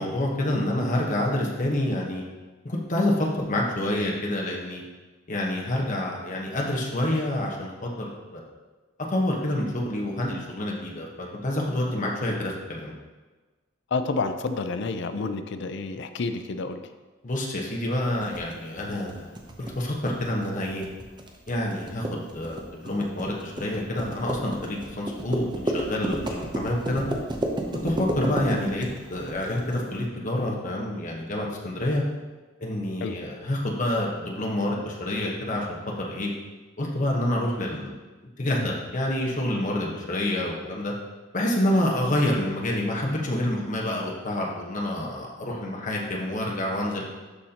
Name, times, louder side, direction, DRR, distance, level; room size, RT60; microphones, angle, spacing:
voice 1, 0.0-2.2 2.6-4.8 5.3-8.4 9.1-12.9 17.2-19.3 19.6-20.8 21.5-22.0 22.3-27.0 27.8-32.0 32.6-35.7 36.0-36.3 36.8-37.9 38.4-40.9 41.3-47.0, left 1 dB, 40° left, -2 dB, 1.1 m, -27 dB
voice 2, 13.9-16.8 33.0-33.1, left 3 dB, 60° left, 9 dB, 0.5 m, -29 dB
sound 1, 18.2-29.8, right 1 dB, 25° right, 0.7 m, -32 dB
12.0 x 4.2 x 2.9 m, 1.2 s
head